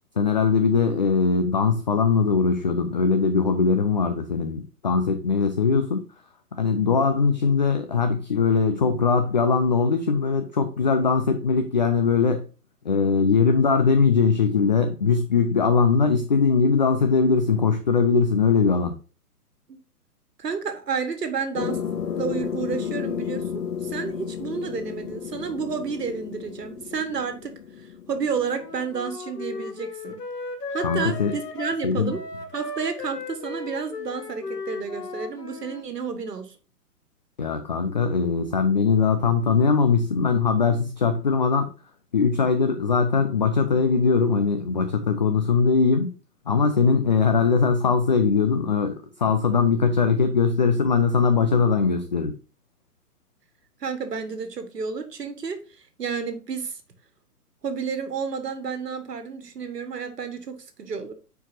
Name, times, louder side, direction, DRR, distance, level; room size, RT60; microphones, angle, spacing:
voice 1, 0.2-6.0 6.5-12.4 12.8-18.9 30.8-31.3 31.8-32.1 37.4-41.7 42.1-46.1 46.5-52.3, left 5 dB, 30° left, 0.4 m, -21 dB
voice 2, 20.4-21.8 22.2-27.6 28.1-30.2 30.7-32.2 32.5-36.6 53.8-55.6 56.0-56.8 57.6-61.1, right 5 dB, 80° right, 1.5 m, -31 dB
sound 1, 21.5-28.7, left 8 dB, 55° left, 1.4 m, -32 dB
Wind instrument woodwind instrument, 28.5-35.8, left 3 dB, 85° left, 1.4 m, -36 dB
9.7 x 4.7 x 2.7 m
hypercardioid pair, 130°, 47 cm